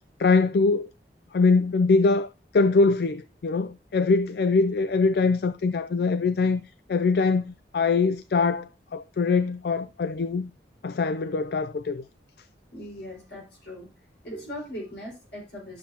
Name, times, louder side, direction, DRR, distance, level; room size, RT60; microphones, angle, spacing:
voice 1, 0.2-0.9 1.3-6.6 6.9-10.5 10.8-12.0, left 4 dB, 60° left, 0.4 m, -23 dB
voice 2, 12.7-13.9 14.2-15.8, equal, 80° left, 4.9 m, -39 dB
11.5 x 7.1 x 2.8 m
head